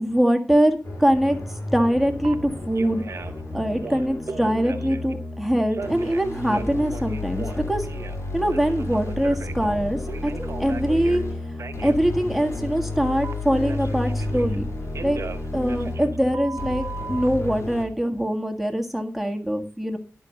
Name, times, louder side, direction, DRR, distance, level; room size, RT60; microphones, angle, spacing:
voice 1, 0.0-1.4 1.7-3.0 3.5-7.9 8.3-11.2 11.8-14.7 15.0-15.2 15.5-20.0, equal, ahead, 3 dB, 1.8 m, -23 dB
sound 1, 0.8-17.9, left 2 dB, 65° left, 3.4 m, -32 dB
Telephone, 2.2-2.3 2.7-3.4 3.8-5.1 5.7-8.2 8.5-11.2 11.6-12.0 13.2-14.6 14.9-17.3, right 4 dB, 65° right, 0.7 m, -37 dB
11.0 x 4.6 x 6.5 m, 0.38 s
cardioid pair, 60°, 5 cm